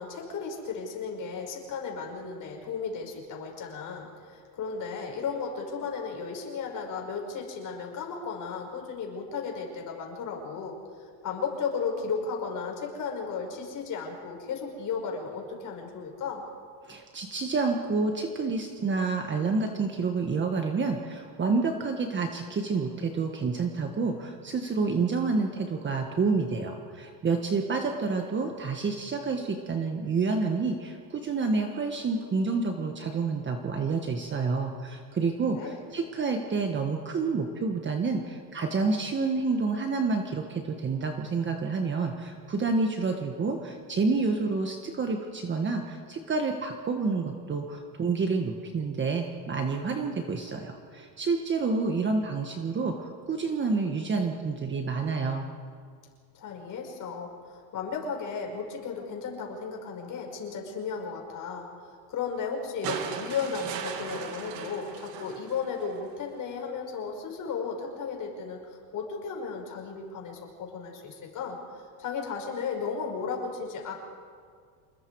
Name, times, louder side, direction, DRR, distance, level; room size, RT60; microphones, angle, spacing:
voice 1, 0.0-16.5 35.5-35.8 56.3-61.7 62.1-71.6 72.0-73.9, left 5 dB, 40° left, 1 dB, 5.6 m, -35 dB
voice 2, 16.8-55.4, right 4 dB, 25° right, 3 dB, 1.5 m, -29 dB
sound 1, 62.8-66.1 67.5-67.6, right 7 dB, 75° right, 2.7 m, -38 dB
28.0 x 21.0 x 4.8 m, 2.1 s
cardioid pair, 135°, 47 cm